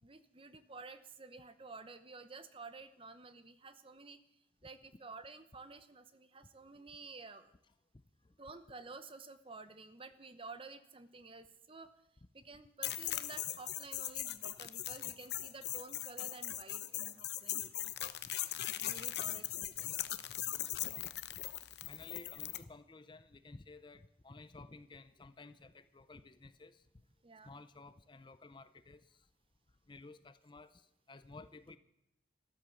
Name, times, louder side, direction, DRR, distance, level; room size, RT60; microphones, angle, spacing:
voice 1, 0.0-4.2 4.6-7.5 8.4-11.9 12.3-18.1 18.8-19.9 27.2-27.5, right 3 dB, 30° right, 11 dB, 0.9 m, -52 dB
sound 1, 12.8-22.6, left 13 dB, 60° left, 0.8 m, -40 dB
voice 2, 21.8-26.9 27.4-29.3 29.9-31.8, left 3 dB, 25° left, 13 dB, 0.5 m, -54 dB
13.5 x 13.0 x 7.1 m, 0.84 s
head